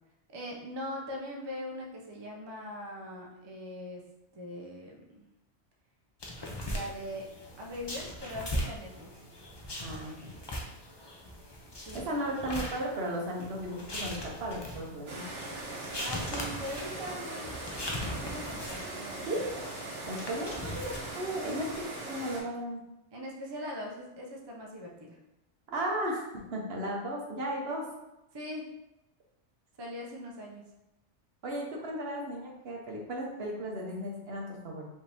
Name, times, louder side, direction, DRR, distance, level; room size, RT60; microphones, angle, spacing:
voice 1, 0.3-4.0 4.3-5.3 6.6-7.3 7.6-9.1 11.9-12.1 16.0-17.6 18.1-19.4 21.3-21.7 23.1-25.2 28.3-28.7 29.8-30.6, left 1 dB, 30° right, -1 dB, 0.5 m, -41 dB
sound 1, 6.2-21.8, left 1 dB, 30° left, 0.5 m, -40 dB
voice 2, 9.8-10.3 11.9-15.2 19.3-19.5 20.1-21.6 22.1-22.8 25.7-27.8 31.4-34.9, right 1 dB, 60° right, -1 dB, 1.1 m, -35 dB
sound 2, 15.1-22.4, right 2 dB, 85° right, 1.4 m, -40 dB
5.0 x 2.8 x 3.4 m, 0.92 s
omnidirectional pair, 1.2 m